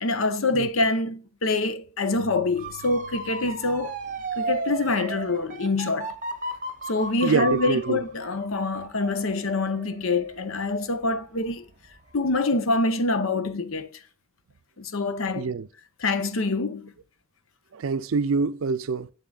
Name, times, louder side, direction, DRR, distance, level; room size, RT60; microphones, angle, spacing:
voice 1, 0.0-4.0 4.4-6.1 6.9-11.7 12.1-13.9 14.8-15.5 16.0-16.9, left 3 dB, 70° left, 0.8 m, -25 dB
Keyboard (musical), 2.1-5.6, left 13 dB, ahead, 2.8 m, -52 dB
Motor vehicle (road) / Siren, 2.6-11.5 11.9-12.3, right 4 dB, 40° right, 0.8 m, -35 dB
voice 2, 7.2-8.0 15.4-15.7 17.7-19.1, right 4 dB, 70° right, 0.4 m, -25 dB
7.5 x 7.3 x 2.4 m
head